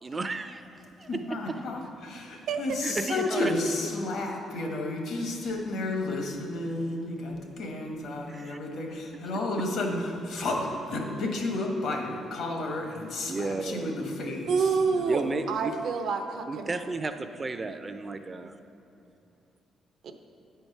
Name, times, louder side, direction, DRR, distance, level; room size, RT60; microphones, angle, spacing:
voice 1, 0.0-1.6 2.8-3.5 8.3-8.6 13.3-14.0 15.1-15.8 16.5-18.6, right 3 dB, 30° right, 9 dB, 0.4 m, -33 dB
voice 2, 1.1-15.3, left 2 dB, 75° left, 2 dB, 1.2 m, -32 dB
voice 3, 14.5-15.2 15.5-16.7 20.0-20.1, right 5 dB, 70° right, 6 dB, 0.6 m, -27 dB
8.6 x 4.6 x 5.5 m, 2.8 s
cardioid pair, 90°, 0 cm